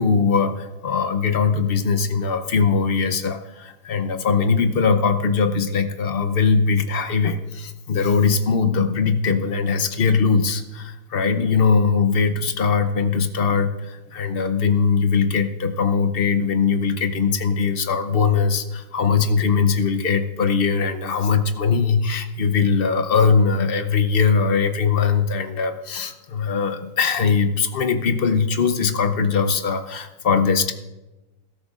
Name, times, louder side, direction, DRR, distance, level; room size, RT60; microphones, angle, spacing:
voice 1, 0.0-30.7, left 5 dB, 65° left, 8 dB, 0.5 m, -21 dB
20.5 x 13.5 x 2.5 m, 1.1 s
omnidirectional pair, 2.0 m